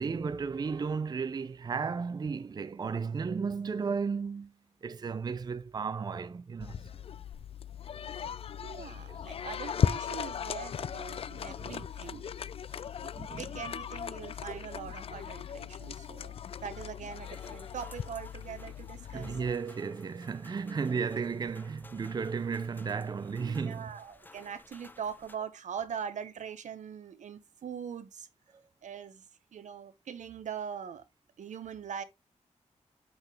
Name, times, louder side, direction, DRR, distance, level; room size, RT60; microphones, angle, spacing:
voice 1, 0.0-4.5 4.8-6.9 8.2-8.4 9.1-9.2 11.4-11.8 13.1-13.5 14.5-14.7 19.1-23.9 28.5-28.6, right 5 dB, 35° right, 0.5 m, -34 dB
sound 1, 6.6-19.5, left 8 dB, 50° left, 0.4 m, -37 dB
voice 2, 8.6-12.3 13.0-19.3 20.7-20.8 23.4-28.3 28.8-29.2 29.5-31.0 31.4-32.0, right 7 dB, 80° right, 1.0 m, -42 dB
sound 2, 17.2-25.4, left 2 dB, 15° left, 0.6 m, -55 dB
8.0 x 5.7 x 3.3 m
wide cardioid pair, 145°, 12 cm